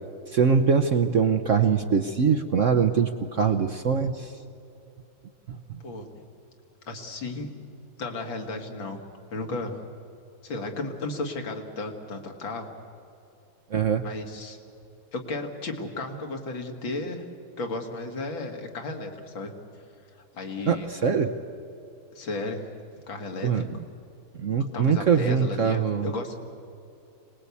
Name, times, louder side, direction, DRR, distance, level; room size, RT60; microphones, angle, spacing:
voice 1, 0.3-4.3 5.5-5.8 13.7-14.1 20.7-21.3 23.4-23.6 24.4-26.1, right 6 dB, 55° right, 7 dB, 0.9 m, -23 dB
voice 2, 6.9-7.5 8.0-9.0 9.3-9.8 10.4-12.7 14.0-14.6 15.1-17.2 17.6-19.5 20.3-20.9 22.1-22.7 23.1-23.6 24.7-26.4, left 2 dB, 80° left, 3 dB, 2.8 m, -34 dB
26.0 x 19.5 x 8.4 m, 2.8 s
omnidirectional pair, 2.1 m